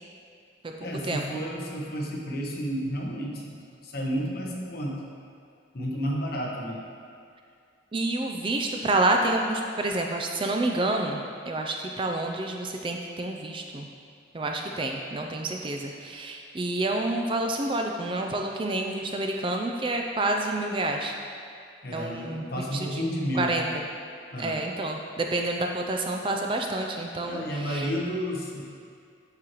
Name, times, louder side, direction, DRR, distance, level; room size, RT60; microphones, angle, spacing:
voice 1, 0.8-5.0 5.7-6.8 21.8-23.6 24.3-24.6 27.2-28.6, equal, 50° left, -2 dB, 1.1 m, -31 dB
voice 2, 7.9-13.9 14.3-21.1 21.9-22.5 22.7-23.0 23.3-23.6 24.4-27.9, right 2 dB, 25° right, 2 dB, 0.4 m, -28 dB
8.4 x 6.6 x 3.0 m, 2.4 s
head